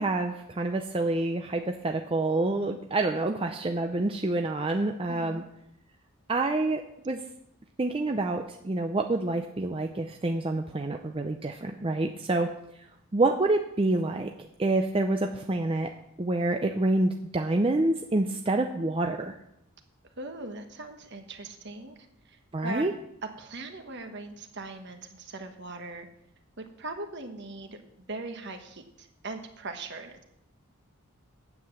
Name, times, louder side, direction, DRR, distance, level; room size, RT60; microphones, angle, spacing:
voice 1, 0.0-5.4 6.3-7.2 7.8-12.5 13.1-14.3 14.6-15.9 16.2-19.4 22.5-22.9, right 2 dB, 25° right, 4 dB, 0.5 m, -27 dB
voice 2, 5.1-5.4 20.2-22.0 22.2-22.9 23.4-26.1 26.6-27.8 28.1-30.2, right 2 dB, 55° right, 6 dB, 1.3 m, -40 dB
9.3 x 7.7 x 7.0 m, 0.78 s
head